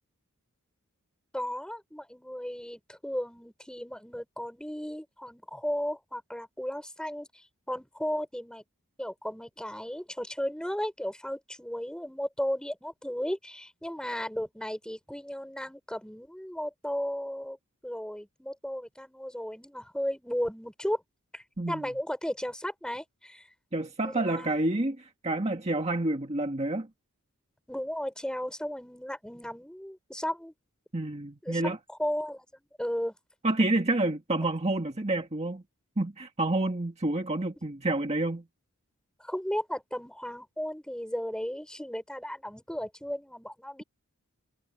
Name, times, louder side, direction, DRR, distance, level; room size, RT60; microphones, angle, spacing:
voice 1, 1.3-8.6 9.0-17.6 17.8-21.0 21.3-23.5 24.0-24.7 27.7-30.5 31.4-33.2 39.2-43.8, equal, 5° left, 6.6 m, -35 dB
voice 2, 21.6-21.9 23.7-26.9 30.9-31.8 33.4-35.6 36.0-38.5, right 2 dB, 30° right, 1.8 m, -28 dB
head